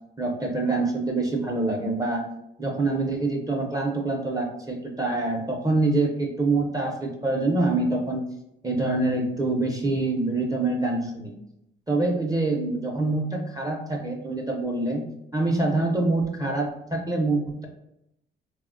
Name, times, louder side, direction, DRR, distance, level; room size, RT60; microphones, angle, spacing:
voice 1, 0.2-2.3 2.6-8.2 8.6-11.3 11.9-15.0 15.3-17.7, right 2 dB, 20° right, 0 dB, 0.5 m, -25 dB
3.0 x 2.1 x 2.4 m, 0.79 s
cardioid pair, 90°, 20 cm